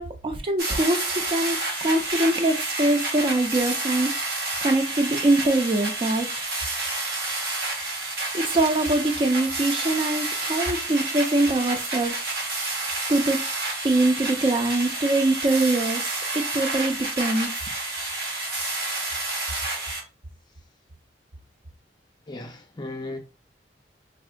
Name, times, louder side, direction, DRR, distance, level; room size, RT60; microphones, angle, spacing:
voice 1, 0.0-6.5 8.3-12.3 13.1-13.4 13.8-17.5, right 2 dB, 30° right, 0.4 m, -23 dB
sound 1, 0.6-20.0, right 2 dB, 60° right, 1.1 m, -29 dB
voice 2, 22.3-23.2, left 2 dB, 25° left, 0.5 m, -35 dB
3.5 x 2.4 x 2.4 m
head